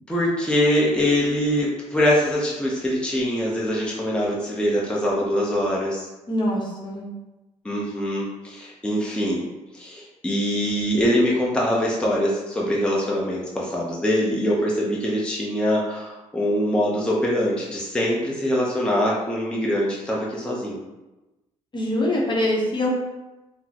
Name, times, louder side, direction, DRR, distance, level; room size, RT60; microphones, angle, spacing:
voice 1, 0.1-6.1 7.6-9.5 9.7-20.8, equal, 5° left, -4 dB, 0.7 m, -23 dB
voice 2, 6.3-7.0 21.7-22.9, left 1 dB, 35° left, -2 dB, 0.8 m, -23 dB
3.7 x 2.0 x 2.8 m, 1.1 s
supercardioid pair, 75°, 13 cm